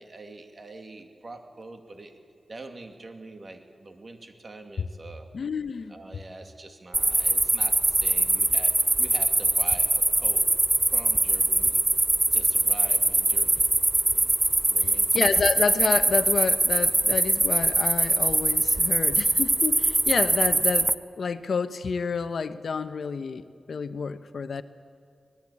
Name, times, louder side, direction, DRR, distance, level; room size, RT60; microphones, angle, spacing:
voice 1, 0.0-2.2 2.5-5.3 5.9-10.5 10.9-11.8 12.3-14.3 14.6-15.3, right 2 dB, 45° right, 5 dB, 2.4 m, -44 dB
voice 2, 5.3-5.9 15.1-20.9 21.2-23.4 23.7-24.6, left 5 dB, 70° left, 11 dB, 0.9 m, -29 dB
sound 1, 6.9-20.9, right 2 dB, 25° right, 0.7 m, -23 dB
25.5 x 19.0 x 8.6 m, 2.2 s
cardioid pair, 75°, 0 cm